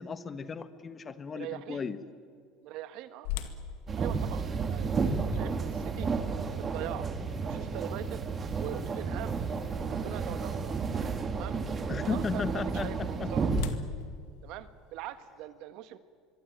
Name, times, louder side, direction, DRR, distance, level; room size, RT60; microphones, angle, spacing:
voice 1, 0.0-2.0 11.9-13.3, left 5 dB, 30° left, 12 dB, 1.4 m, -35 dB
voice 2, 1.3-1.8 2.6-3.3 4.0-6.1 6.6-7.1 7.4-8.3 8.5-9.4 9.9-10.9 11.3-11.6 12.0-13.5 14.4-16.0, right 13 dB, 65° right, 11 dB, 1.6 m, -42 dB
sound 1, 3.2-9.2 9.7-9.8 10.4-10.7 12.7-15.4, left 11 dB, 80° left, 2.0 m, -43 dB
sound 2, 3.9-13.7, right 5 dB, 30° right, 2.4 m, -32 dB
25.0 x 24.0 x 9.2 m, 2.1 s
supercardioid pair, 115°, 0 cm